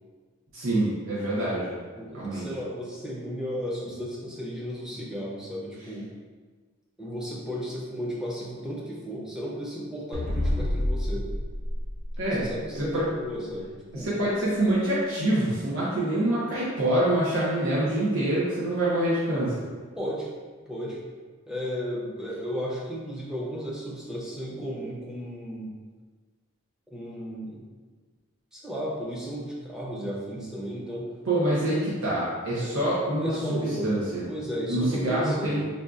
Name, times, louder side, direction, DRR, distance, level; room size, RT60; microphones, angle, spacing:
voice 1, 0.5-1.7 2.1-2.5 12.2-12.5 12.7-13.1 13.9-19.6 31.3-34.2 34.7-35.6, right 1 dB, 70° right, -8 dB, 0.7 m, -26 dB
voice 2, 2.0-6.1 7.0-11.3 12.2-14.1 20.0-20.3 20.7-21.0 21.5-25.7 26.9-27.6 28.5-31.1 32.6-32.8 33.2-33.9 34.3-35.6, equal, 5° right, -5 dB, 0.6 m, -34 dB
sound 1, 10.1-12.8, left 1 dB, 40° right, 0.8 m, -29 dB
5.3 x 2.3 x 2.4 m, 1.4 s
head